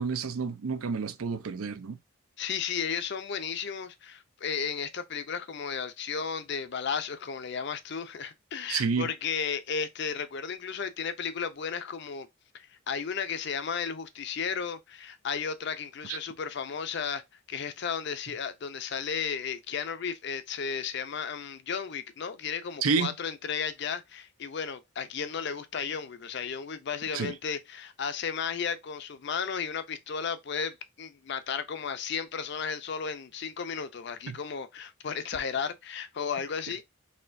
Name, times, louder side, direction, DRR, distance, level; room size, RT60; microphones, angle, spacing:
voice 1, 0.0-2.0 8.7-9.1 16.1-16.2 22.8-23.1 27.1-27.3 34.3-34.4, right 5 dB, 85° right, 0.5 m, -29 dB
voice 2, 2.4-12.3 12.5-17.2 17.5-36.8, left 6 dB, 55° left, 0.5 m, -34 dB
4.2 x 3.0 x 2.5 m
head